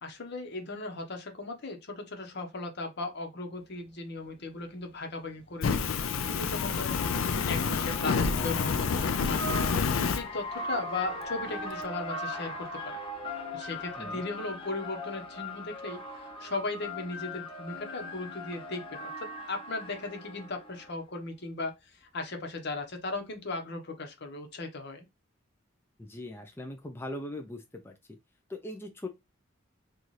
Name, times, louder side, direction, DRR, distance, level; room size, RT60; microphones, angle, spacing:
voice 1, 0.0-7.0 7.5-9.6 10.0-13.0 13.5-25.0, left 3 dB, 60° left, 0.9 m, -37 dB
sound 1, 3.8-3.9 5.4-21.0, left 1 dB, 30° left, 0.9 m, -40 dB
Fire, 5.6-10.2, left 5 dB, 90° left, 0.4 m, -28 dB
voice 2, 26.0-27.9 28.5-29.1, left 1 dB, 10° left, 0.4 m, -40 dB
4.0 x 2.4 x 3.1 m
head